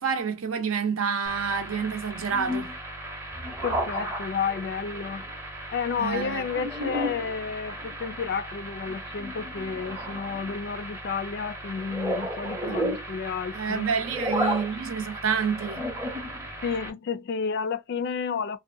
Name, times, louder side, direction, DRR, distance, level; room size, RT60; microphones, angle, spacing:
voice 1, 0.0-2.7 6.0-6.5 12.7-12.8 13.5-15.9, right 6 dB, 75° right, 0.6 m, -28 dB
sound 1, 1.2-16.9, equal, 10° right, 0.6 m, -34 dB
voice 2, 3.6-5.3 5.7-13.9 16.6-18.6, left 6 dB, 50° left, 0.3 m, -31 dB
2.6 x 2.2 x 2.5 m
head